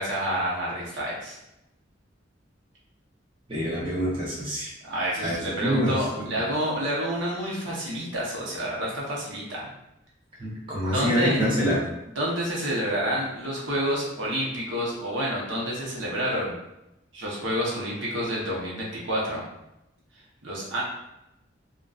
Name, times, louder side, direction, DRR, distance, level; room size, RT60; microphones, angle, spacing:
voice 1, 0.0-1.4 4.8-9.7 10.9-11.5 12.2-16.5 17.1-19.4 20.4-20.8, equal, 75° right, -5 dB, 0.8 m, -29 dB
voice 2, 3.5-4.7 5.2-5.3 5.6-6.0 6.3-6.4 10.4-11.8, equal, 25° right, -7 dB, 0.6 m, -25 dB
2.5 x 2.2 x 2.3 m, 0.88 s
head